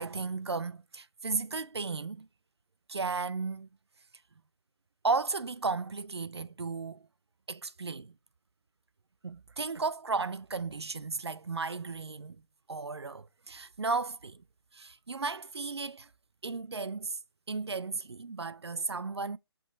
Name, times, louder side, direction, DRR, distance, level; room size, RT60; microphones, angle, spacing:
voice 1, 0.0-2.3 2.9-3.7 5.0-7.1 7.5-8.1 9.2-12.4 12.7-14.4 14.7-16.1 16.4-17.2 17.5-19.4, right 4 dB, 75° right, 0.5 m, -34 dB
6.3 x 4.7 x 5.0 m
figure-of-eight pair, 145°, 14 cm